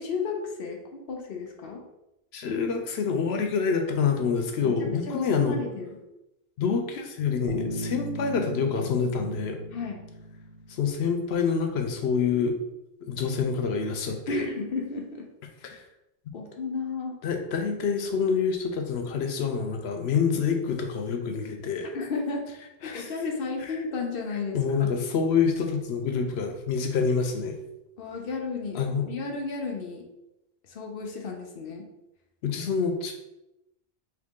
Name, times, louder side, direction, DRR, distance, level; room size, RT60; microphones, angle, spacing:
voice 1, 0.0-1.8 4.6-6.0 9.7-10.0 14.3-15.3 16.3-17.2 21.9-22.4 22.8-24.9 28.0-30.0 30.6-31.9, left 4 dB, 65° left, 2 dB, 0.8 m, -33 dB
voice 2, 2.3-5.6 6.6-9.6 10.7-12.6 13.1-14.5 17.2-21.9 22.8-23.1 24.5-27.6 28.7-29.0 32.4-33.1, left 6 dB, 85° left, 4 dB, 0.9 m, -27 dB
Bass guitar, 7.5-11.2, right 1 dB, 45° right, 0.8 m, -37 dB
3.8 x 2.9 x 3.6 m, 0.91 s
omnidirectional pair, 1.1 m